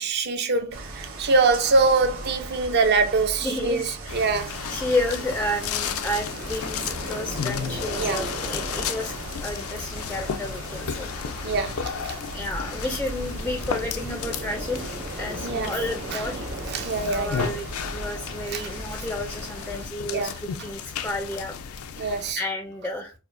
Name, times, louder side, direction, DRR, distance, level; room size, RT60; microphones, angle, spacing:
voice 1, 0.0-4.6 8.0-8.2 11.4-12.2 15.4-15.7 16.1-16.2 16.7-17.4 18.5-18.6 20.1-20.4 22.0-22.4, right 3 dB, 50° right, 0.5 m, -24 dB
sound 1, 0.7-19.9, right 2 dB, 70° right, 1.0 m, -39 dB
voice 2, 3.4-4.2 4.7-9.1 9.4-11.1 12.3-16.5 17.0-21.5 22.0-23.1, left 1 dB, 10° left, 0.3 m, -31 dB
sound 2, 4.1-22.3, left 7 dB, 85° left, 0.4 m, -34 dB
sound 3, 4.5-18.9, right 2 dB, 85° right, 1.6 m, -40 dB
4.7 x 2.0 x 2.5 m
head